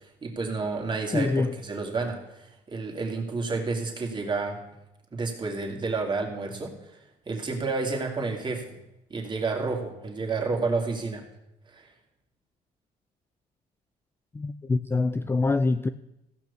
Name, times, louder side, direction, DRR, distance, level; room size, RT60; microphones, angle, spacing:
voice 1, 0.0-4.6 5.1-7.0 7.3-8.8 9.1-11.2 11.7-11.9, right 3 dB, 25° right, 2.5 m, -30 dB
voice 2, 1.1-1.6 14.3-15.9, left 3 dB, 15° left, 0.3 m, -25 dB
15.0 x 6.1 x 7.1 m
cardioid pair, 110°, 17 cm